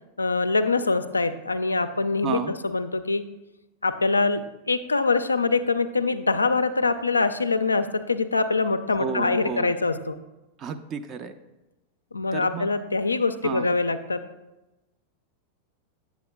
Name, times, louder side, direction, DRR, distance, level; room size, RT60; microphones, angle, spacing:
voice 1, 0.2-2.4 2.6-3.2 3.8-10.2 12.1-14.2, left 3 dB, 80° left, 10 dB, 0.3 m, -24 dB
voice 2, 2.2-2.5 9.0-9.7 10.6-11.3 12.3-12.7 13.4-13.7, right 6 dB, 30° right, 8 dB, 0.4 m, -31 dB
8.2 x 7.0 x 2.2 m, 1.0 s
figure-of-eight pair, 90°, 0 cm